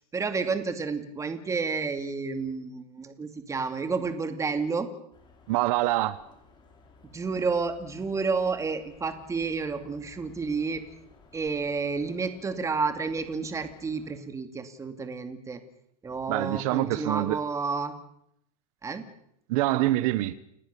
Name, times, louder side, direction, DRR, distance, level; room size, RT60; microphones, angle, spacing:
voice 1, 0.0-4.9 7.1-10.8 11.3-15.6 16.0-17.9 18.8-19.0, right 4 dB, 15° right, 2.5 m, -30 dB
sound 1, 5.1-14.2, left 4 dB, 25° left, 5.6 m, -56 dB
voice 2, 5.5-6.2 16.3-17.4 19.5-20.3, right 17 dB, 65° right, 1.1 m, -25 dB
29.5 x 18.0 x 6.9 m
supercardioid pair, 140°, 20 cm